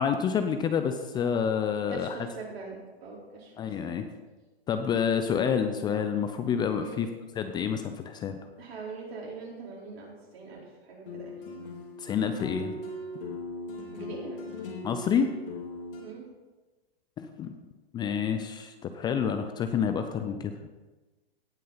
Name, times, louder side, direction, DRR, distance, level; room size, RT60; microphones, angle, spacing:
voice 1, 0.0-2.2 3.6-4.1 4.7-7.1 7.4-8.4 12.0-12.8 14.8-15.4 17.2-17.5 17.9-20.5, left 7 dB, 15° left, 8 dB, 0.4 m, -28 dB
voice 2, 1.9-3.9 6.8-7.1 8.6-11.3 13.9-14.4 16.0-16.3, right 4 dB, 75° right, -3 dB, 4.3 m, -42 dB
sound 1, 11.1-16.0, left 2 dB, 60° left, 2.7 m, -39 dB
17.0 x 6.4 x 4.0 m, 1.2 s
hypercardioid pair, 115°, 31 cm